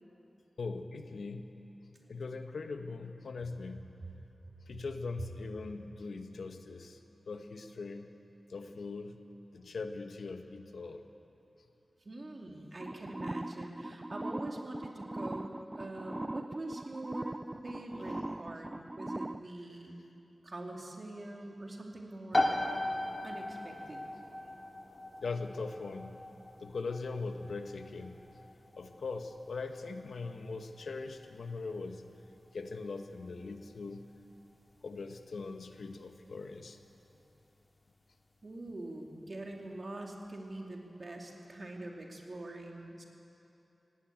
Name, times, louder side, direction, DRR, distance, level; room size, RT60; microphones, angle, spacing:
voice 1, 0.6-1.5 2.1-3.9 4.7-7.0 7.3-8.1 8.5-9.2 9.5-11.0 19.7-19.8 25.2-26.2 26.6-28.2 28.8-32.0 32.5-34.1 34.8-36.8, left 4 dB, 85° left, 6 dB, 1.2 m, -40 dB
voice 2, 12.0-17.4 17.6-20.0 20.4-22.6 23.2-24.1 38.4-43.0, right 1 dB, 50° right, 1 dB, 2.8 m, -44 dB
sound 1, 12.8-19.4, right 1 dB, 25° right, 0.4 m, -40 dB
sound 2, 22.3-36.8, left 1 dB, 30° left, 2.2 m, -39 dB
18.5 x 17.5 x 8.7 m, 2.9 s
wide cardioid pair, 70°, 0 cm